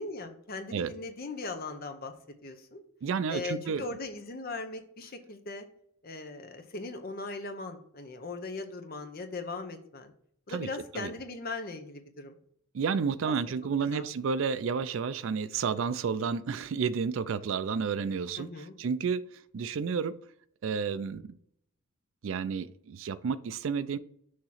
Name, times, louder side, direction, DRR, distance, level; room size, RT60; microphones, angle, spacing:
voice 1, 0.0-2.1 2.4-2.8 3.3-5.7 6.0-10.1 10.5-12.4 13.2-13.3 13.9-14.1 18.3-18.8, left 3 dB, 45° left, 6 dB, 0.7 m, -39 dB
voice 2, 3.0-3.9 10.5-10.7 10.9-11.1 12.7-18.5 18.8-20.1 20.6-21.2 22.2-24.0, right 6 dB, 65° right, 15 dB, 0.4 m, -31 dB
6.4 x 2.9 x 5.6 m, 0.67 s
head